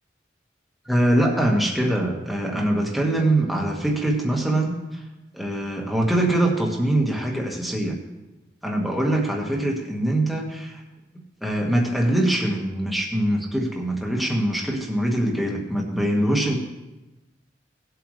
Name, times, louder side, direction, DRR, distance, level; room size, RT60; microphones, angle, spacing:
voice 1, 0.8-5.0 5.3-8.0 8.6-10.8 11.4-16.6, right 1 dB, ahead, -1 dB, 1.7 m, -23 dB
18.5 x 8.0 x 3.3 m, 1.0 s
head